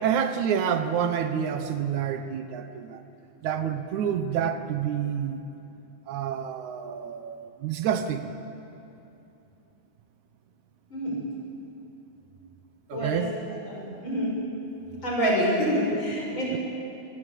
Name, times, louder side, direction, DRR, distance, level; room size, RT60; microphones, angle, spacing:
voice 1, 0.0-3.0 3.4-5.4 6.1-8.3 12.9-13.3 16.5-16.6, right 8 dB, 75° right, 9 dB, 2.4 m, -28 dB
voice 2, 12.9-13.2 13.7-14.3 15.0-16.5, equal, 40° left, -3 dB, 7.4 m, -26 dB
25.5 x 19.5 x 8.3 m, 2.8 s
omnidirectional pair, 3.4 m